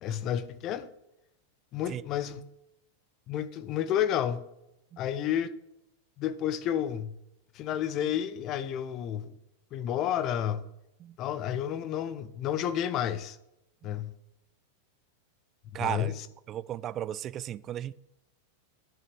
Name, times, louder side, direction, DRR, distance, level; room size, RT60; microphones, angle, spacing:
voice 1, 0.0-0.9 1.7-2.4 3.3-4.4 5.0-5.5 6.2-7.1 7.5-9.3 9.7-10.6 11.2-13.4 13.8-14.1 15.8-16.1, left 10 dB, 35° left, 0.7 m, -30 dB
voice 2, 15.7-16.1 16.5-17.9, right 11 dB, 30° right, 0.4 m, -35 dB
10.5 x 6.7 x 6.0 m
figure-of-eight pair, 90°, 0 cm